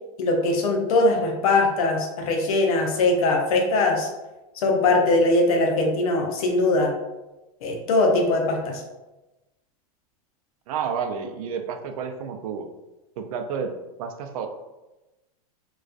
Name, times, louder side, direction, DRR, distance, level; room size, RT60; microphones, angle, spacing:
voice 1, 0.2-4.1 4.5-6.9 7.6-8.8, left 2 dB, 70° left, 1 dB, 0.6 m, -21 dB
voice 2, 10.7-12.7 13.2-14.5, right 6 dB, 70° right, 6 dB, 0.4 m, -30 dB
2.3 x 2.3 x 2.4 m, 1.0 s
hypercardioid pair, 120°, 19 cm